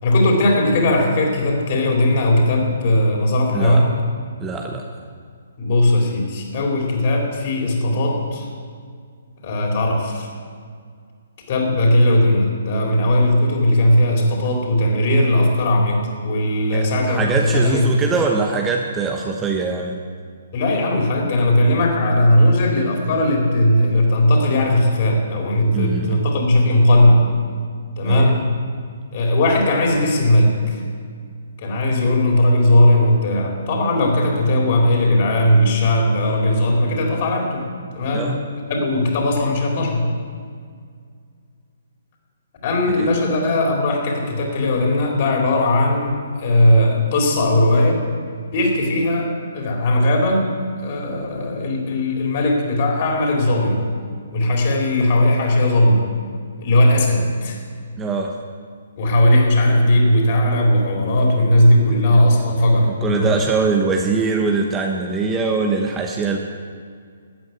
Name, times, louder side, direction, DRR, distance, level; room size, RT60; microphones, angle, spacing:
voice 1, 0.0-4.0 5.6-8.5 9.4-10.3 11.5-17.9 20.5-27.3 28.0-28.5 29.1-30.8 31.6-37.6 37.9-40.1 42.6-48.0 48.5-50.5 50.8-53.9 54.3-56.1 56.6-57.6 59.0-63.5, left 1 dB, 40° left, 0 dB, 4.4 m, -18 dB
voice 2, 4.4-4.8 16.7-20.0 25.7-26.2 28.0-28.3 38.1-38.4 43.0-43.1 58.0-58.3 61.9-62.2 63.0-66.4, right 4 dB, 15° right, 2 dB, 1.1 m, -22 dB
13.5 x 9.5 x 9.4 m, 2.1 s
figure-of-eight pair, 130°, 0 cm